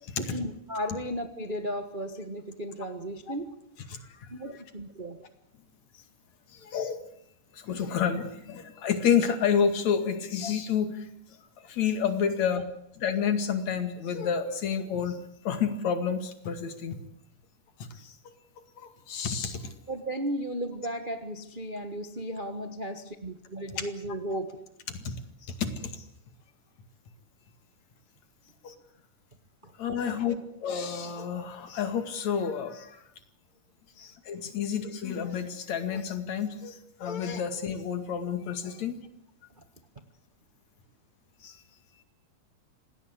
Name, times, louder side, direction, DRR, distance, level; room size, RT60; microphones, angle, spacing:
voice 1, 0.2-3.6 4.3-5.3 19.9-24.6 29.6-29.7 34.4-34.5 39.6-39.7, equal, 60° right, 7 dB, 0.5 m, -35 dB
voice 2, 3.9-4.3 6.5-7.0 7.5-11.1 11.6-12.6 13.0-15.2 15.4-17.0 17.9-18.1 18.8-19.7 23.8-23.9 24.3-24.4 24.9-25.2 25.5-26.0 28.6-28.7 29.8-33.0 34.0-39.0 41.4-41.6, left 7 dB, 60° left, 9 dB, 3.3 m, -29 dB
27.0 x 18.5 x 8.2 m, 0.77 s
omnidirectional pair, 3.7 m